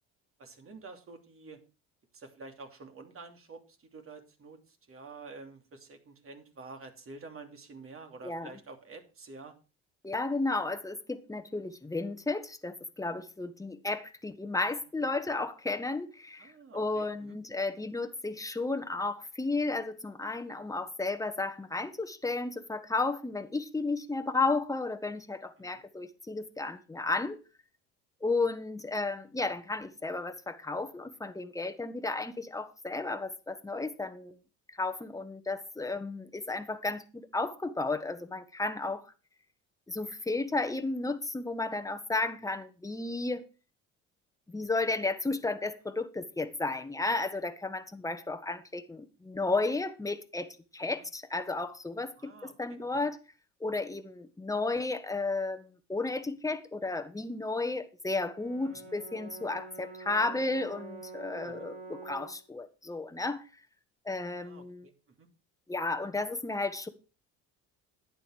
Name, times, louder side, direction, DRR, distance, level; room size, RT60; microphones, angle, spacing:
voice 1, 0.4-1.6 2.1-9.5 15.0-15.1 16.4-17.4 25.6-25.8 51.0-51.1 52.2-52.8 58.7-58.9 61.4-61.7 64.4-64.9 65.2-65.3, right 3 dB, 40° right, 2.9 m, -49 dB
voice 2, 10.0-27.4 28.2-34.4 34.7-39.1 39.9-43.4 44.5-53.2 53.6-63.4 64.0-64.9 65.7-66.9, left 3 dB, 10° left, 1.5 m, -33 dB
Brass instrument, 58.1-62.4, right 3 dB, 90° right, 3.4 m, -46 dB
11.0 x 8.9 x 4.7 m
supercardioid pair, 75°, 34 cm